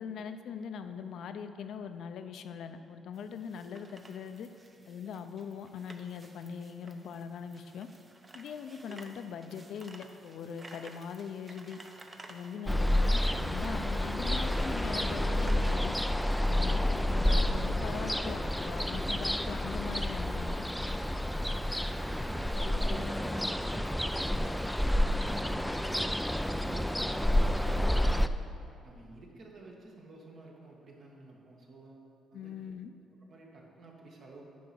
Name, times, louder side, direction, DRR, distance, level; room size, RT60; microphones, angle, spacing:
voice 1, 0.0-4.5 4.9-7.9 8.3-11.8 12.3-15.9 16.4-20.6 22.6-23.1 32.3-32.9, left 7 dB, 75° left, 9 dB, 0.5 m, -41 dB
sound 1, 3.1-17.6, right 2 dB, 30° right, 0.8 m, -55 dB
Ocean, 12.7-28.3, left 1 dB, ahead, 0.3 m, -29 dB
voice 2, 21.0-24.7 25.1-26.3 26.5-28.4 28.8-32.0 32.3-32.6 33.2-34.5, right 2 dB, 60° right, -2 dB, 1.7 m, -51 dB
9.3 x 4.7 x 7.0 m, 2.6 s
cardioid pair, 90°, 0 cm